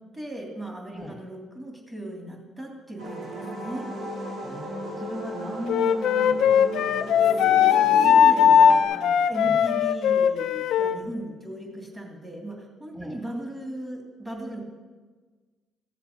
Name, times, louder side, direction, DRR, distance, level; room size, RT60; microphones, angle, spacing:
voice 1, 0.1-3.9 7.2-14.6, right 1 dB, 20° right, 1 dB, 2.9 m, -37 dB
sound 1, 3.0-8.8, right 1 dB, 80° right, 3.1 m, -34 dB
voice 2, 4.4-7.5 9.4-9.6 12.9-13.2, equal, 5° right, -2 dB, 1.7 m, -38 dB
Wind instrument woodwind instrument, 5.7-11.0, left 8 dB, 80° left, 0.4 m, -19 dB
14.5 x 7.4 x 5.5 m, 1.4 s
cardioid pair, 90°, 0 cm